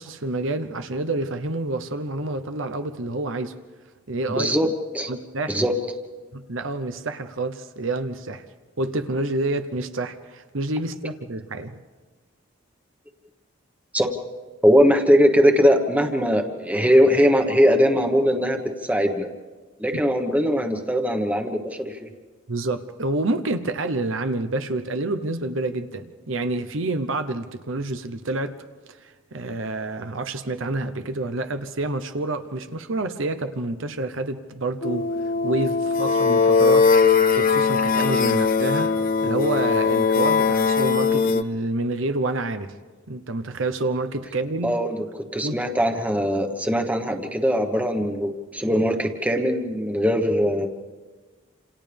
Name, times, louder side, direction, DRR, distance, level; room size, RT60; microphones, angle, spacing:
voice 1, 0.0-3.5 4.1-4.7 5.1-5.6 6.3-8.4 8.8-11.8 19.9-20.0 22.5-28.6 28.9-35.1 35.4-36.9 37.4-38.9 39.2-42.7 43.1-44.8 45.4-45.6, right 2 dB, 70° right, 9 dB, 1.0 m, -28 dB
voice 2, 4.4-4.7 4.9-5.1 5.5-5.7 13.9-14.1 14.6-19.3 19.8-22.1 44.6-50.7, equal, 5° right, 4 dB, 1.3 m, -20 dB
sound 1, 34.8-41.4, left 5 dB, 45° left, 0.7 m, -20 dB
28.5 x 27.5 x 3.5 m, 1.4 s
head